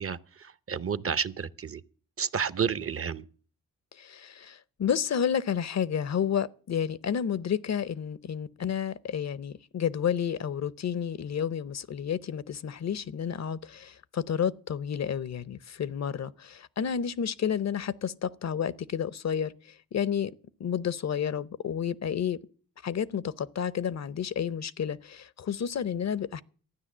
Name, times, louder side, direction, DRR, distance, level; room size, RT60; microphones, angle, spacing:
voice 1, 0.0-1.8 2.2-3.2, right 6 dB, 40° right, 0.8 m, -31 dB
voice 2, 3.9-20.3 20.6-22.4 22.8-26.4, left 8 dB, 50° left, 0.7 m, -31 dB
12.5 x 9.6 x 7.2 m
cardioid pair, 65°, 34 cm